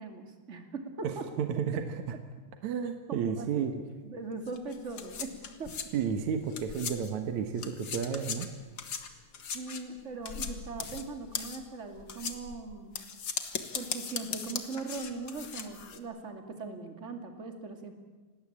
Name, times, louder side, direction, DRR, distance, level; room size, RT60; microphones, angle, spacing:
voice 1, 0.0-1.3 3.1-3.7 4.0-5.3 5.6-5.7 9.5-13.0 13.7-17.9, right 4 dB, 25° right, 5 dB, 2.2 m, -40 dB
voice 2, 1.0-2.2 2.6-3.7 5.9-8.5, right 7 dB, 60° right, 7 dB, 2.4 m, -32 dB
sound 1, 4.5-7.2 7.5-16.0, left 6 dB, 50° left, 1.5 m, -39 dB
26.5 x 19.0 x 8.7 m, 1.3 s
omnidirectional pair, 4.3 m